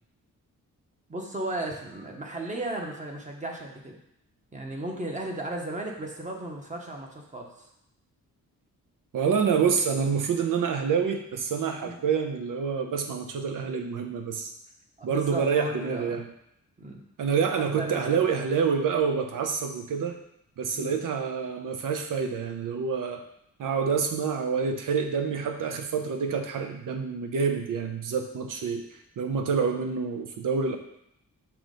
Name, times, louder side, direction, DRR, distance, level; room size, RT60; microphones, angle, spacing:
voice 1, 1.1-4.0 4.5-7.7 11.8-12.0 15.0-16.2 16.8-17.0 17.8-18.2 20.7-20.9, right 2 dB, 20° right, 0 dB, 1.0 m, -35 dB
voice 2, 9.1-14.5 15.0-16.3 17.2-20.2 20.6-23.2 23.6-28.8 29.2-30.8, right 6 dB, 70° right, 5 dB, 0.8 m, -27 dB
5.9 x 3.1 x 5.2 m, 0.77 s
wide cardioid pair, 135°, 33 cm